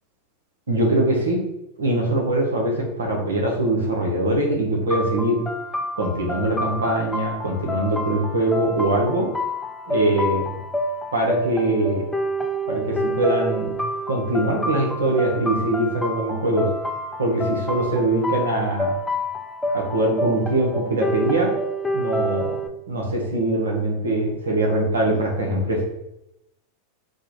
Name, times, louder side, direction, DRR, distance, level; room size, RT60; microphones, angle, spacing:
voice 1, 0.7-1.4 1.8-5.4 6.0-9.3 9.9-10.6 11.1-12.0 12.6-13.7 14.1-16.7 17.2-18.9 19.7-21.5 21.9-25.8, right 1 dB, 85° right, -1 dB, 0.9 m, -22 dB
sound 1, 4.9-22.7, equal, 5° left, 0.4 m, -28 dB
4.4 x 2.2 x 3.0 m, 0.84 s
hypercardioid pair, 95°, 0 cm